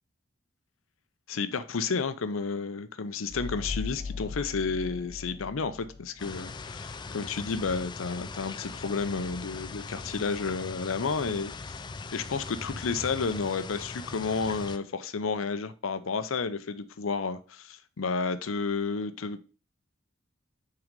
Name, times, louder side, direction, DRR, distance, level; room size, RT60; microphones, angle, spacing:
voice 1, 1.3-11.7 12.1-19.5, left 4 dB, 85° left, 0.6 m, -31 dB
sound 1, 3.3-6.7, left 4 dB, 45° left, 0.9 m, -39 dB
sound 2, 6.2-14.8, left 4 dB, 20° left, 0.3 m, -40 dB
6.0 x 3.9 x 5.2 m
head